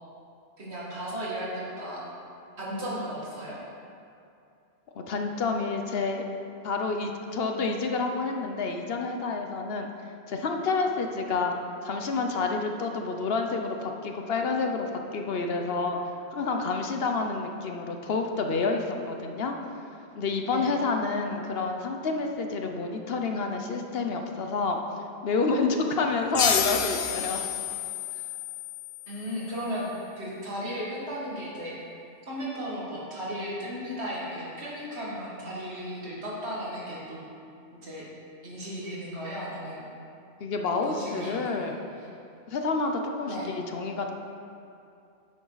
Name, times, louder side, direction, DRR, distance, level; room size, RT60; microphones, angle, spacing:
voice 1, 0.6-2.0 2.6-3.6 20.5-20.7 29.1-29.9 30.2-31.8 32.3-37.2 37.7-38.0 38.4-39.9 40.8-41.7 43.3-43.5, equal, 75° right, -6 dB, 2.3 m, -35 dB
voice 2, 5.0-6.2 6.6-9.9 10.3-11.5 11.8-16.0 16.3-19.6 20.2-24.8 25.2-27.4 40.4-41.8 42.5-44.1, left 4 dB, 65° left, 4 dB, 1.0 m, -29 dB
sound 1, 26.3-29.6, left 7 dB, 50° left, 0.5 m, -30 dB
10.0 x 7.6 x 4.0 m, 2.6 s
omnidirectional pair, 1.1 m